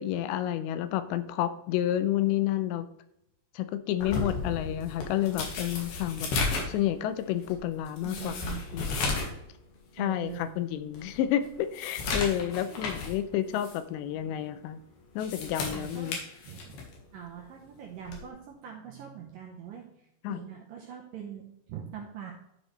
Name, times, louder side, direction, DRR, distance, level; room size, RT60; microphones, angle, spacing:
voice 1, 0.0-2.9 3.6-6.3 6.7-9.2 10.0-14.8 15.2-16.2 20.2-20.4, left 12 dB, 90° left, 11 dB, 2.9 m, -30 dB
sound 1, 4.0-9.4 9.7-9.8 10.4-10.5 10.9-13.2 13.5-13.8 15.0-17.0 18.1-18.3, left 3 dB, 65° left, 3.1 m, -34 dB
voice 2, 8.0-8.9 10.0-10.5 12.7-12.9 15.7-16.2 16.4-16.8 17.1-22.3, right 9 dB, 75° right, 0 dB, 2.0 m, -43 dB
11.5 x 5.1 x 3.2 m, 0.79 s
omnidirectional pair, 5.0 m